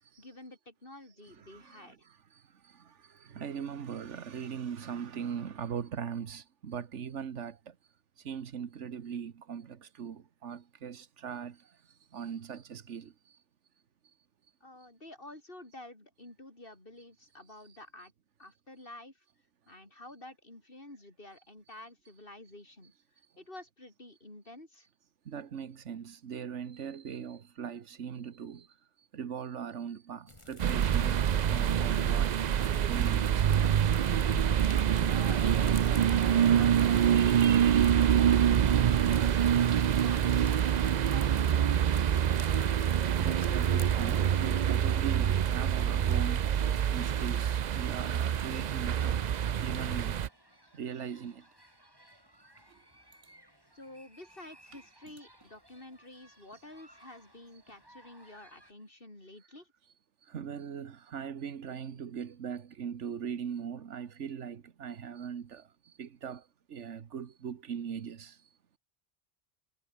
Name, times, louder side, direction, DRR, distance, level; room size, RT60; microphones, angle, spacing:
voice 1, 0.2-2.0 14.6-18.1 18.4-19.2 19.7-22.9 23.4-24.9 35.1-39.4 39.8-40.6 41.1-41.8 53.8-59.7, left 1 dB, 50° left, 5.8 m, -50 dB
voice 2, 1.4-1.9 3.2-7.6 8.2-11.6 12.1-13.1 25.3-28.7 29.1-31.2 31.5-32.3 32.8-33.4 43.2-46.4 46.9-49.2 49.6-50.2 50.7-51.4 60.3-65.6 66.0-66.4 66.7-68.3, right 7 dB, 90° right, 1.5 m, -40 dB
sound 1, 30.3-44.2, left 1 dB, 25° left, 3.6 m, -49 dB
sound 2, 30.6-50.3, right 9 dB, 50° right, 0.5 m, -26 dB
sound 3, 42.0-58.7, equal, 20° right, 7.2 m, -60 dB
omnidirectional pair, 1.2 m